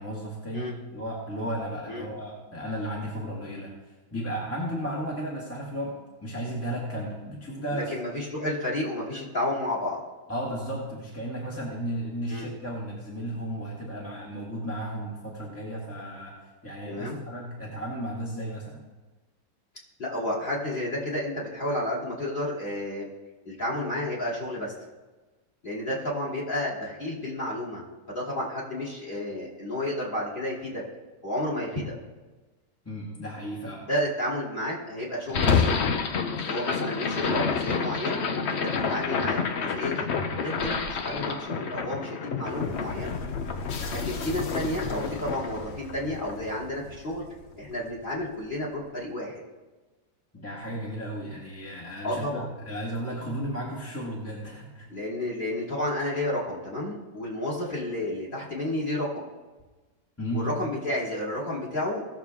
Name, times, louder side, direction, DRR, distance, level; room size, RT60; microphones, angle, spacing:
voice 1, 0.0-3.7 4.1-7.9 10.3-16.3 16.6-18.8 32.9-33.9 36.4-36.5 43.7-44.3 50.3-54.9 60.2-60.5, equal, 10° left, -5 dB, 1.7 m, -34 dB
voice 2, 7.7-10.0 12.3-12.5 16.9-17.2 20.0-23.1 23.4-24.7 25.6-30.8 31.2-31.9 33.8-35.7 36.4-38.2 38.5-40.1 40.4-43.2 43.9-47.3 47.6-49.4 52.0-52.5 54.9-59.3 60.3-62.0, left 1 dB, 30° left, -5 dB, 3.0 m, -31 dB
sound 1, 35.3-47.5, left 5 dB, 55° left, 0.8 m, -29 dB
17.5 x 6.9 x 3.6 m, 1.2 s
omnidirectional pair, 1.9 m